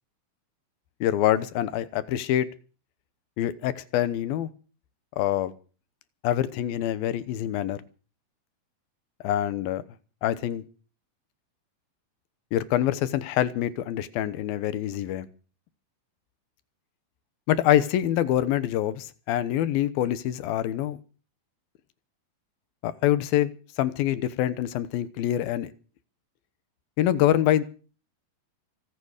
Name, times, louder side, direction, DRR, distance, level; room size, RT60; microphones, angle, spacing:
voice 1, 1.0-2.5 3.4-4.5 5.2-5.5 6.2-7.8 9.2-9.8 10.2-10.6 12.5-15.3 17.5-21.0 22.8-25.7 27.0-27.6, left 12 dB, 85° left, 2.8 m, -25 dB
24.0 x 9.3 x 6.5 m
omnidirectional pair, 4.1 m